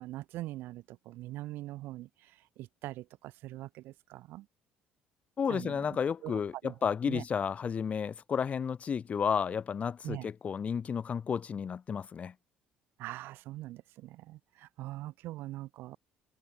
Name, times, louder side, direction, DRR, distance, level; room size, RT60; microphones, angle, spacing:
voice 1, 0.0-4.5 5.5-6.0 6.2-6.7 7.1-7.2 10.0-10.3 13.0-16.0, right 16 dB, 80° right, 5.6 m, -42 dB
voice 2, 5.4-12.3, left 7 dB, 40° left, 1.1 m, -32 dB
cardioid pair, 100°, 4 cm